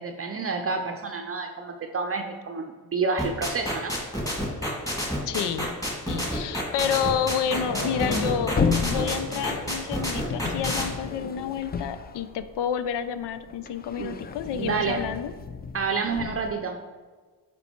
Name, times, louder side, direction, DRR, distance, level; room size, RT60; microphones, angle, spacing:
voice 1, 0.0-3.9 14.0-14.2 14.5-15.1 15.7-16.8, right 4 dB, 35° right, 4 dB, 0.5 m, -29 dB
sound 1, 3.2-10.8, equal, 10° left, 1.9 m, -28 dB
voice 2, 5.3-5.8 6.1-8.5 8.8-15.3, left 8 dB, 85° left, 12 dB, 0.5 m, -29 dB
sound 2, 6.8-12.9 13.2-16.5, left 5 dB, 25° left, 0.4 m, -32 dB
sound 3, 7.6-13.7, left 1 dB, 55° left, 1.6 m, -39 dB
7.0 x 4.5 x 4.4 m, 1.4 s
cardioid pair, 95°, 41 cm